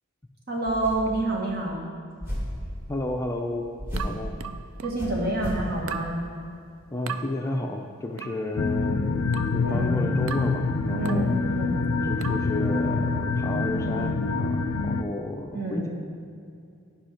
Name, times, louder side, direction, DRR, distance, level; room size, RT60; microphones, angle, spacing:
voice 1, 0.5-1.9 4.8-6.2 9.6-10.0 10.9-11.8 15.5-15.9, right 2 dB, 50° right, -1 dB, 1.6 m, -28 dB
sound 1, 0.7-1.3 2.2-2.7 3.8-4.2 5.0-5.7, equal, 10° right, 2.0 m, -33 dB
voice 2, 2.9-4.4 6.9-9.0 9.4-11.3 12.0-15.9, left 2 dB, 15° left, 2 dB, 0.4 m, -32 dB
sound 2, 4.0-5.1 5.9-6.2 7.1-7.3 8.2-8.4 9.3-9.6 10.3-10.6 11.1-11.3 12.2-12.5, right 8 dB, 70° right, 0.4 m, -36 dB
sound 3, 8.6-15.0, left 3 dB, 80° left, 0.5 m, -26 dB
10.0 x 5.5 x 5.1 m, 2.4 s
head